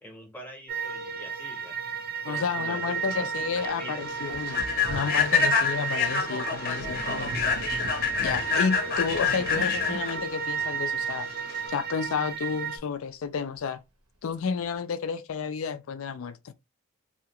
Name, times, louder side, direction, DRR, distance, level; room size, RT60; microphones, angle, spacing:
voice 1, 0.0-1.7 2.3-2.9 3.2-3.3 3.6-4.0, left 1 dB, 10° left, 0.7 m, -44 dB
sound 1, 0.7-12.8, right 6 dB, 45° right, 0.5 m, -33 dB
voice 2, 2.2-7.5 8.2-11.3 11.7-13.8 14.2-16.5, left 6 dB, 65° left, 0.4 m, -31 dB
Human voice / Train, 2.8-11.7, left 6 dB, 40° left, 0.7 m, -28 dB
Sink (filling or washing), 3.6-3.7 4.3-11.6, right 2 dB, 75° right, 0.8 m, -42 dB
2.8 x 2.3 x 2.8 m
head